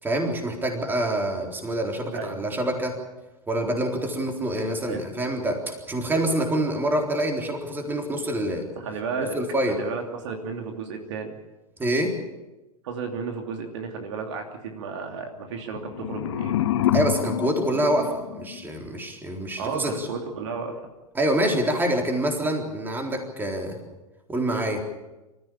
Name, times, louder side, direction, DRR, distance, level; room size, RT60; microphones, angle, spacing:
voice 1, 0.0-3.0 3.5-8.7 9.3-9.8 11.8-12.2 16.9-20.1 21.1-23.8 24.3-24.8, right 1 dB, 10° right, 2 dB, 3.9 m, -26 dB
voice 2, 8.7-9.4 9.7-11.4 12.8-16.6 19.6-20.8, right 5 dB, 50° right, 3 dB, 2.8 m, -33 dB
sound 1, 15.6-18.7, left 12 dB, 50° left, 0.9 m, -27 dB
26.5 x 14.5 x 8.8 m, 1.1 s
figure-of-eight pair, 100°, 19 cm